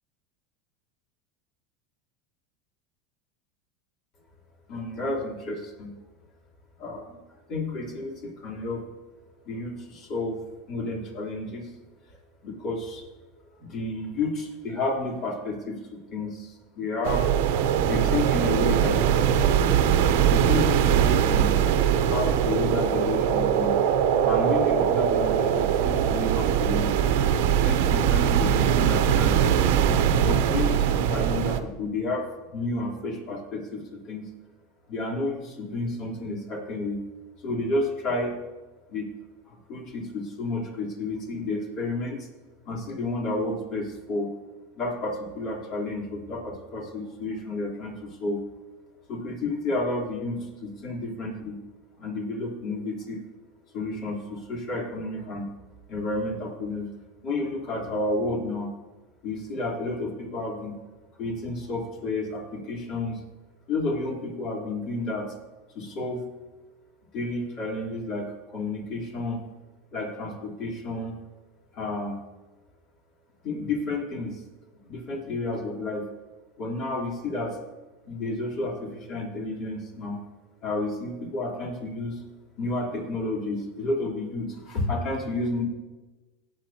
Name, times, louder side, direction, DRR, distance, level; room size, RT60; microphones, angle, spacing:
voice 1, 4.7-5.9 6.8-7.2 7.5-8.8 9.5-10.4 10.7-11.7 12.4-13.0 13.6-17.2 17.9-19.3 20.3-21.5 22.1-23.8 24.2-26.9 27.5-29.4 30.2-34.3 34.9-37.0 37.4-38.3 38.9-39.1 39.5-42.3 42.6-44.3 44.8-48.4 49.1-51.6 52.0-53.2 53.7-55.5 55.9-56.9 57.2-58.7 59.2-60.7 61.2-63.2 63.7-65.3 65.7-66.2 67.1-69.4 69.9-71.2 71.7-72.2 73.4-74.4 74.8-76.0 76.6-77.6 78.0-80.2 80.6-82.2 82.6-85.6, left 2 dB, 50° left, -2 dB, 3.6 m, -31 dB
sound 1, 17.0-31.6, right 9 dB, 75° right, 0.8 m, -22 dB
17.5 x 8.5 x 2.9 m, 1.2 s
supercardioid pair, 105°, 0 cm